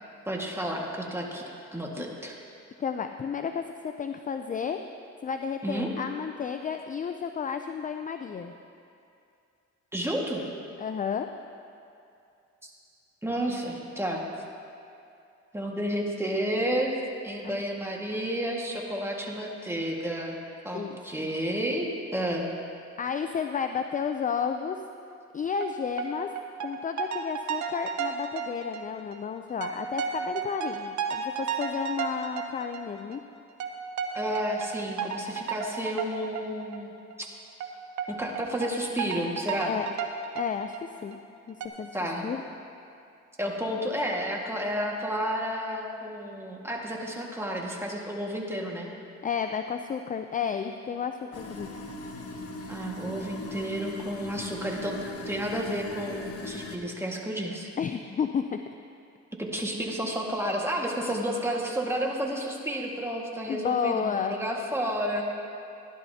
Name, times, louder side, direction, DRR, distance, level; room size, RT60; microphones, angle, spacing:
voice 1, 0.3-1.4 1.7-2.4 5.6-5.9 9.9-10.4 12.6-12.7 13.2-14.3 15.5-16.9 17.2-20.4 20.6-21.9 22.1-22.5 34.1-36.9 37.2-37.3 38.1-39.8 41.9-42.3 43.4-48.9 52.7-57.7 59.4-65.3, equal, 10° right, -1 dB, 1.7 m, -31 dB
voice 2, 2.8-4.8 5.2-8.5 10.8-11.3 13.5-13.7 17.4-17.6 20.7-21.3 23.0-24.8 25.3-26.3 26.6-33.2 39.6-39.9 40.3-41.2 41.5-41.9 42.2-42.4 49.2-51.7 57.8-58.6 63.5-64.4, left 7 dB, 25° left, 7 dB, 0.4 m, -32 dB
sound 1, 25.6-25.7 26.0-26.1 26.3-29.2 29.5-33.2 33.6-36.8 37.1-37.2 37.6-37.7 38.0-38.1 38.3-40.8 41.1-41.2 41.6-41.7, right 7 dB, 70° right, 0.9 m, -33 dB
sound 2, 51.3-56.8, left 3 dB, 50° left, 1.2 m, -39 dB
16.0 x 11.5 x 2.8 m, 2.5 s
cardioid pair, 90°, 30 cm